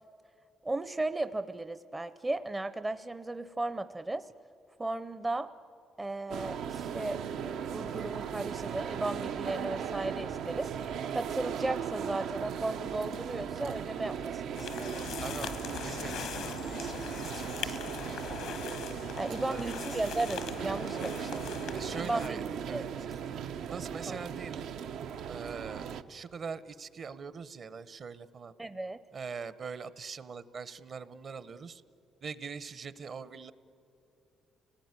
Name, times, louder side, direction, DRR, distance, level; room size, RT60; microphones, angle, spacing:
voice 1, 0.6-4.3 4.8-5.5 6.0-7.2 7.5-10.7 11.1-15.2 19.2-21.4 22.0-22.4 22.7-23.1 24.1-24.3 28.6-29.0, right 2 dB, 15° right, 12 dB, 0.5 m, -35 dB
sound 1, 6.3-26.0, right 8 dB, 90° right, 0.8 m, -37 dB
sound 2, 14.5-22.3, left 8 dB, 85° left, 1.2 m, -41 dB
voice 2, 15.2-15.5 15.8-17.8 19.3-20.0 20.9-21.1 21.7-22.9 23.7-24.7 25.3-28.5 29.1-31.8 32.2-33.5, right 5 dB, 45° right, 15 dB, 0.8 m, -42 dB
29.5 x 18.5 x 9.6 m, 2.9 s
cardioid pair, 125°, 0 cm